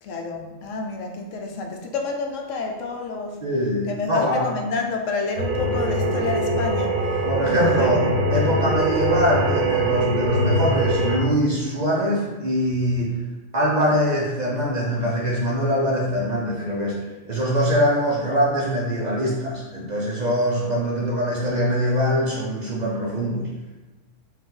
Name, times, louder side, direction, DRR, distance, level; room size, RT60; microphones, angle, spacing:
voice 1, 0.0-3.4 3.9-6.9 7.4-8.0, left 3 dB, 80° left, 3 dB, 1.0 m, -29 dB
voice 2, 3.4-4.5 5.6-5.7 7.2-13.2 13.5-17.0 17.2-23.5, equal, 50° right, -3 dB, 0.5 m, -23 dB
sound 1, 5.4-11.2, right 2 dB, 75° right, 1.1 m, -22 dB
4.5 x 2.4 x 3.7 m, 1.2 s
omnidirectional pair, 1.3 m